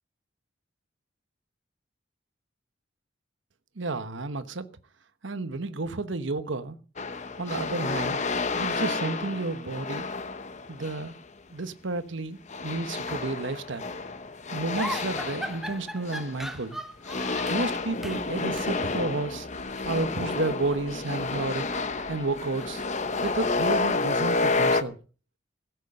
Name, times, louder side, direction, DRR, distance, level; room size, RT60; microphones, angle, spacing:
voice 1, 3.8-4.7 5.2-6.8 7.4-8.2 8.5-10.1 10.7-11.2 11.5-13.8 14.5-16.8 17.5-19.5 19.9-21.7 22.1-22.8 23.2-25.0, right 3 dB, 70° right, 1.1 m, -31 dB
sound 1, 7.0-11.2 12.5-16.6 17.0-24.8, left 3 dB, 35° left, 0.9 m, -30 dB
sound 2, 14.8-17.7 18.0-18.3 18.6-18.8 19.7-20.8 21.2-23.6, equal, ahead, 0.8 m, -40 dB
16.5 x 8.2 x 6.6 m
head